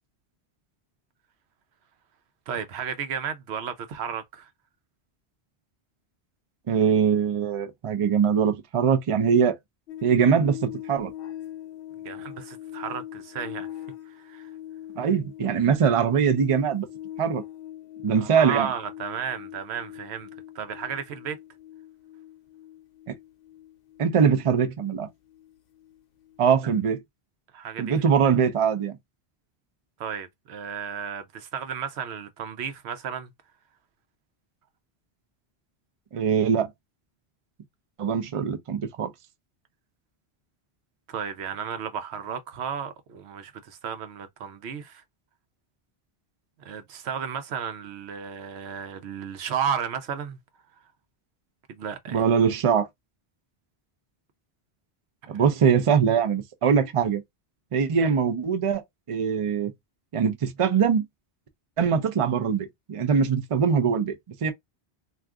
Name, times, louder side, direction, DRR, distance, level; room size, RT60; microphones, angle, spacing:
voice 1, 2.5-4.5 12.0-13.7 14.1-14.5 18.1-20.3 20.5-21.4 27.5-28.0 28.2-28.3 30.0-33.3 41.1-45.0 46.6-50.4 51.7-52.3 55.2-55.4, right 7 dB, 85° right, 0.9 m, -33 dB
voice 2, 6.7-9.6 10.0-11.1 15.0-16.9 17.2-17.4 18.0-18.7 23.1-23.2 24.0-25.1 26.4-27.0 27.8-29.0 36.1-36.7 38.0-39.1 52.1-52.9 55.3-57.2 57.7-58.8 59.1-59.7 60.1-61.0 61.8-64.5, right 7 dB, 45° right, 0.5 m, -22 dB
sound 1, 9.9-26.4 26.7-26.9, left 12 dB, 65° left, 0.7 m, -42 dB
2.4 x 2.4 x 3.5 m
omnidirectional pair, 1.1 m